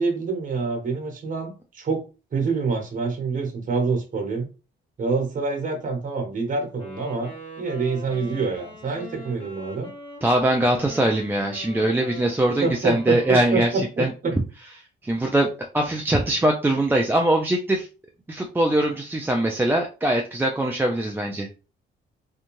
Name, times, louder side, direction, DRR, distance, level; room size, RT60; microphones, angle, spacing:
voice 1, 0.0-2.0 2.3-4.5 5.0-7.3 7.6-9.9 12.6-14.3, right 4 dB, 40° right, 3 dB, 1.0 m, -26 dB
Wind instrument woodwind instrument, 6.7-14.0, equal, 25° left, 1.2 m, -42 dB
voice 2, 10.2-13.7 14.0-14.1 15.0-15.5 15.7-17.9 18.3-21.5, right 1 dB, 10° right, 1 dB, 0.4 m, -22 dB
2.6 x 2.2 x 3.0 m, 0.32 s
cardioid pair, 90°, 20 cm